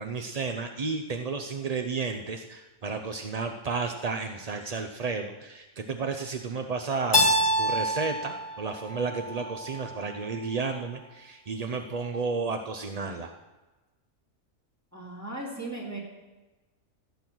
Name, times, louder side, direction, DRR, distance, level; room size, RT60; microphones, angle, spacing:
voice 1, 0.0-13.3, right 4 dB, 45° right, 5 dB, 0.5 m, -32 dB
Keyboard (musical), 7.1-9.9, equal, 20° left, 1.3 m, -26 dB
voice 2, 14.9-16.0, right 2 dB, 10° right, -3 dB, 3.2 m, -37 dB
14.5 x 9.5 x 6.2 m, 1.1 s
omnidirectional pair, 1.6 m